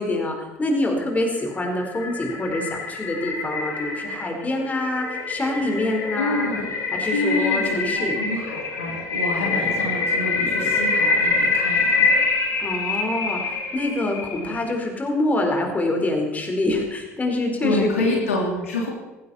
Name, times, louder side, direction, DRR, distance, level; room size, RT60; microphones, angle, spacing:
voice 1, 0.0-6.5 6.9-8.2 12.6-18.1, left 2 dB, 20° left, 2 dB, 4.4 m, -25 dB
sound 1, 1.3-14.7, left 3 dB, 40° left, 3.5 m, -25 dB
voice 2, 6.2-6.6 7.1-12.1 17.6-18.9, left 2 dB, 75° left, -1 dB, 3.1 m, -27 dB
19.0 x 16.5 x 4.3 m, 1.1 s
figure-of-eight pair, 60°, 7 cm